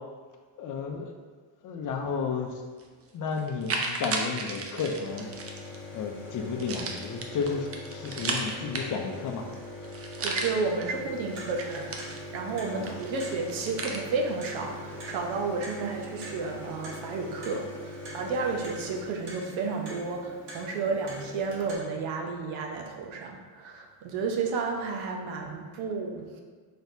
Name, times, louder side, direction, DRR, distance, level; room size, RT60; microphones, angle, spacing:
voice 1, 0.6-1.1 1.6-2.6 3.1-5.3 5.9-9.5 12.7-12.9, left 5 dB, 45° left, 3 dB, 0.5 m, -32 dB
sound 1, 2.8-2.9 3.4-5.8 6.6-9.2 9.5-9.6 9.8-10.8 11.3-12.5 12.9-14.0, right 3 dB, 30° right, 0.5 m, -34 dB
sound 2, 5.0-19.7 21.0-21.1 21.2-21.7, left 2 dB, 25° left, 1.0 m, -42 dB
voice 2, 10.2-11.9 12.3-26.4, right 4 dB, 85° right, 2 dB, 0.8 m, -32 dB
Clock, 10.8-21.8, right 1 dB, 65° right, 1.3 m, -46 dB
4.2 x 3.4 x 2.6 m, 1.5 s
cardioid pair, 115°, 46 cm